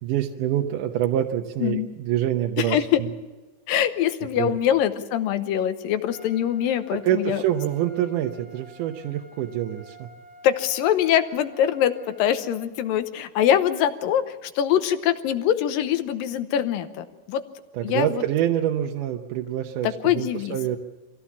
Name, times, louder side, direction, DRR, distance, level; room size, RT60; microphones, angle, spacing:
voice 1, 0.0-3.1 4.4-4.6 7.0-10.1 17.7-20.8, right 11 dB, 75° right, 3 dB, 2.3 m, -26 dB
voice 2, 2.6-3.0 3.7-7.4 10.4-17.4 17.8-18.2 19.8-20.6, left 10 dB, 85° left, 10 dB, 2.7 m, -23 dB
Trumpet, 6.0-12.6, equal, 70° left, 3.0 m, -49 dB
24.5 x 16.0 x 7.3 m, 1.2 s
omnidirectional pair, 4.0 m